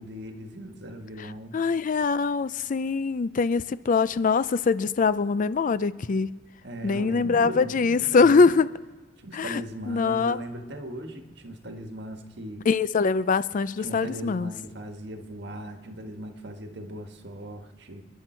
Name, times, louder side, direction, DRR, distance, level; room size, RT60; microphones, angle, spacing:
voice 1, 0.0-1.6 6.6-8.5 9.2-12.6 13.8-18.0, equal, 65° right, 5 dB, 1.6 m, -39 dB
voice 2, 1.5-6.4 6.8-8.7 9.3-9.6 9.9-10.4 12.7-14.5, left 4 dB, 45° left, 16 dB, 0.4 m, -23 dB
29.0 x 10.5 x 4.5 m, 1.3 s
head